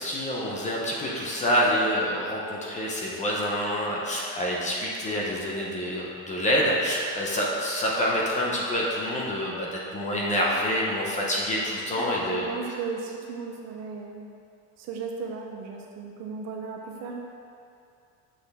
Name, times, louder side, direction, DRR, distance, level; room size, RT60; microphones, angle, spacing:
voice 1, 0.0-12.5, equal, 15° left, -3 dB, 0.7 m, -27 dB
voice 2, 12.0-14.3 14.8-17.3, right 4 dB, 40° right, 1 dB, 0.7 m, -35 dB
7.9 x 6.1 x 3.5 m, 2.5 s
cardioid pair, 170°, 42 cm